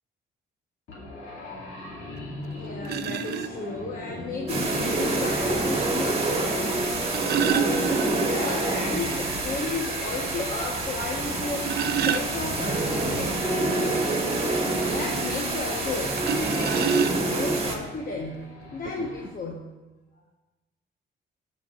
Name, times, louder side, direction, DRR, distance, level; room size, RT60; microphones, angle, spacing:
sound 1, 0.9-19.3, left 2 dB, 80° left, 2.3 m, -37 dB
sound 2, 2.2-2.3 2.8-3.5 4.9-5.0 6.8-8.5 8.9-9.0 9.4-9.5 10.0-10.1 11.3-12.8 16.2-17.5 18.4-18.5 18.9-19.1, right 9 dB, 55° right, 0.4 m, -28 dB
voice 1, 2.5-13.5 14.9-19.7, left 3 dB, 45° left, 0 dB, 1.2 m, -34 dB
sound 3, 4.5-17.8, right 2 dB, 30° right, 1.6 m, -27 dB
15.0 x 6.3 x 2.4 m, 1.1 s
cardioid pair, 90°, 20 cm